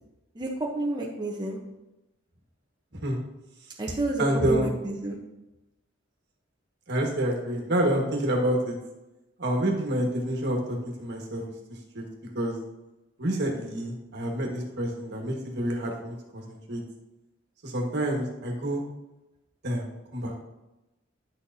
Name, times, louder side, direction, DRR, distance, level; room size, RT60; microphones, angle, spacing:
voice 1, 0.3-1.6 3.8-5.2, right 2 dB, 20° right, -2 dB, 0.8 m, -29 dB
voice 2, 4.2-4.8 6.9-8.8 9.4-11.4 11.9-12.1 12.3-12.6 13.2-16.8 17.6-18.8 19.6-19.8 20.1-20.4, right 1 dB, 60° right, 0 dB, 1.6 m, -28 dB
9.7 x 6.4 x 2.7 m, 0.99 s
head